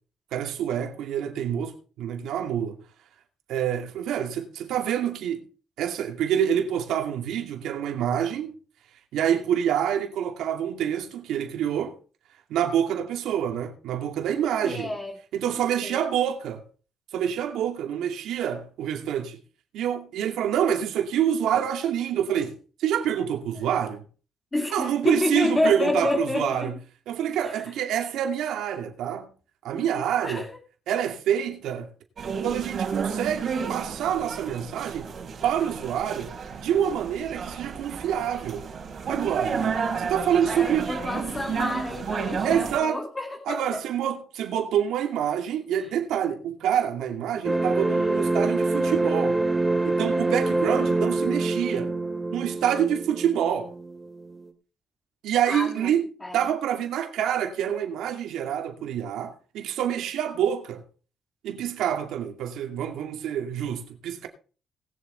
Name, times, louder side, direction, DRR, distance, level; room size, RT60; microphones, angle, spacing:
voice 1, 0.3-2.8 3.5-5.4 5.8-8.5 9.1-12.0 12.5-15.0 15.3-16.6 17.1-19.4 19.7-24.0 24.7-26.7 27.1-29.3 29.6-30.4 30.9-31.9 32.4-35.1 35.4-36.3 36.6-38.7 39.1-39.6 40.0-40.9 42.4-43.0 43.5-49.4 49.8-51.9 52.3-53.7 55.2-56.1 56.3-60.8 61.4-64.3, right 9 dB, 85° right, 2.4 m, -27 dB
voice 2, 14.6-15.1 15.4-15.5 15.8-16.0 24.5-26.8 27.4-27.7 29.7-30.5 40.5-43.8 45.8-45.9 55.4-55.9 56.2-56.4, left 2 dB, 20° left, 2.1 m, -29 dB
sound 1, 32.2-42.8, right 6 dB, 55° right, 4.2 m, -31 dB
sound 2, 47.4-54.4, right 2 dB, 10° right, 2.4 m, -25 dB
19.0 x 7.3 x 4.3 m
cardioid pair, 90°, 0 cm